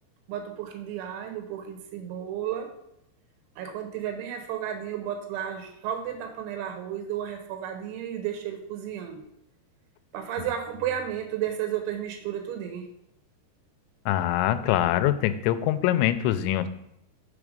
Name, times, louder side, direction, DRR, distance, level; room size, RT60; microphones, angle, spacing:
voice 1, 0.3-2.7 3.6-9.3 10.1-12.9, right 10 dB, 85° right, 5 dB, 3.3 m, -33 dB
voice 2, 14.1-16.7, left 12 dB, 85° left, 11 dB, 2.9 m, -24 dB
6.9 x 6.0 x 5.1 m, 0.82 s
omnidirectional pair, 5.3 m